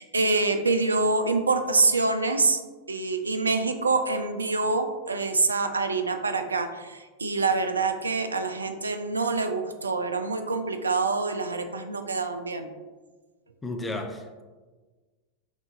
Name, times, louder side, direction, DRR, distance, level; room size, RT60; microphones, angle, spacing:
voice 1, 0.0-2.6 2.9-12.7, right 3 dB, 75° right, 7 dB, 0.3 m, -26 dB
voice 2, 13.6-14.4, left 2 dB, 10° left, 4 dB, 0.4 m, -33 dB
6.0 x 2.5 x 2.7 m, 1.3 s
figure-of-eight pair, 90°, 0 cm